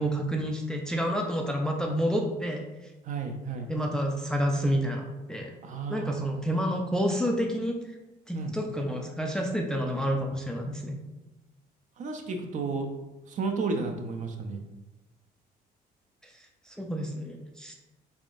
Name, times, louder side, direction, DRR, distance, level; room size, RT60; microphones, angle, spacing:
voice 1, 0.0-2.6 3.7-5.5 5.9-7.7 8.3-11.0 16.8-17.7, equal, 5° left, 1 dB, 0.3 m, -29 dB
voice 2, 3.0-3.7 5.6-6.5 8.3-8.6 12.0-12.9 13.3-14.6, right 4 dB, 50° right, 4 dB, 0.5 m, -32 dB
3.5 x 3.5 x 2.5 m, 1.1 s
cardioid pair, 110°, 17 cm